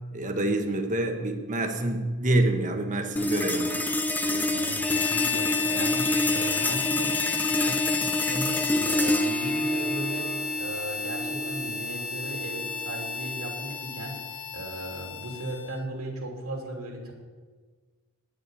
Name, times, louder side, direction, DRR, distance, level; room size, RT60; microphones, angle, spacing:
voice 1, 0.1-3.8, right 1 dB, 35° right, 5 dB, 1.2 m, -27 dB
sound 1, 3.2-13.8, left 1 dB, 10° left, 0.6 m, -28 dB
voice 2, 4.2-17.1, right 1 dB, 80° right, 0 dB, 3.0 m, -37 dB
Harmonica, 4.8-15.9, left 8 dB, 55° left, 2.2 m, -32 dB
10.5 x 6.9 x 8.9 m, 1.4 s
head